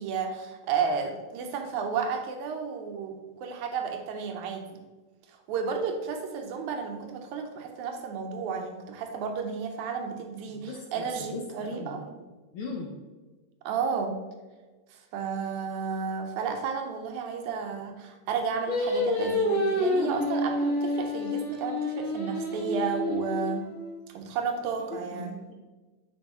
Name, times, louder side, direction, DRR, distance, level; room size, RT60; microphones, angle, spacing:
voice 1, 0.0-4.8 5.5-12.0 13.7-14.2 15.1-23.7 24.1-25.4, right 6 dB, 90° right, 4 dB, 2.1 m, -32 dB
voice 2, 10.4-12.0 12.5-12.9 24.8-25.5, left 3 dB, 80° left, 0 dB, 1.2 m, -39 dB
Singing, 18.7-24.0, left 1 dB, 30° left, 1.6 m, -28 dB
10.5 x 4.6 x 3.0 m, 1.3 s
omnidirectional pair, 3.3 m